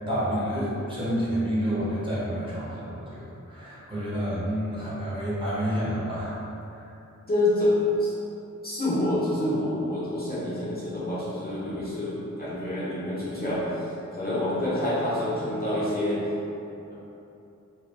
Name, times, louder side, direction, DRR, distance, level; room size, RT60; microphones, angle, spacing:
voice 1, 0.1-6.4 6.8-6.9, equal, 15° right, -10 dB, 1.1 m, -29 dB
voice 2, 7.3-7.7 8.0-8.1 8.6-16.3, left 1 dB, 30° left, -10 dB, 0.8 m, -27 dB
4.0 x 2.3 x 3.3 m, 2.9 s
wide cardioid pair, 100°, 31 cm